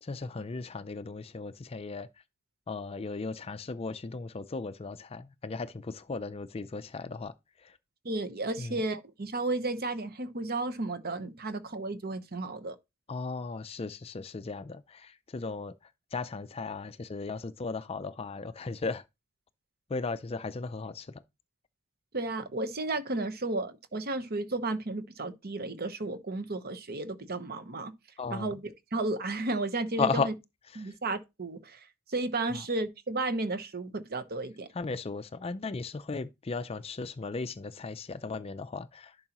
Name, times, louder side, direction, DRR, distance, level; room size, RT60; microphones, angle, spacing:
voice 1, 0.0-2.1 2.7-7.8 8.6-8.8 13.1-15.7 16.1-19.0 19.9-21.2 28.2-28.5 30.0-30.3 30.7-31.0 32.5-32.6 34.7-39.2, left 4 dB, 25° left, 0.4 m, -36 dB
voice 2, 8.0-12.8 22.1-27.9 28.3-28.6 28.9-30.3 30.8-34.7, right 2 dB, 45° right, 0.9 m, -33 dB
11.0 x 5.5 x 3.0 m
head